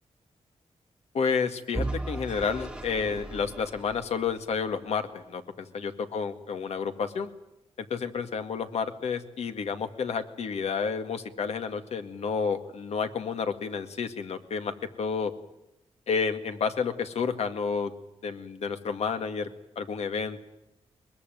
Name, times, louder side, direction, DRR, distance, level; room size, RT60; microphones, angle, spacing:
voice 1, 1.1-7.3 7.8-15.3 16.1-17.9 18.2-19.5 19.8-20.4, left 5 dB, 70° left, 8 dB, 2.1 m, -30 dB
Vehicle / Engine, 1.7-4.8, right 2 dB, 5° right, 1.5 m, -36 dB
22.5 x 22.0 x 9.3 m, 0.87 s
wide cardioid pair, 155°, 11 cm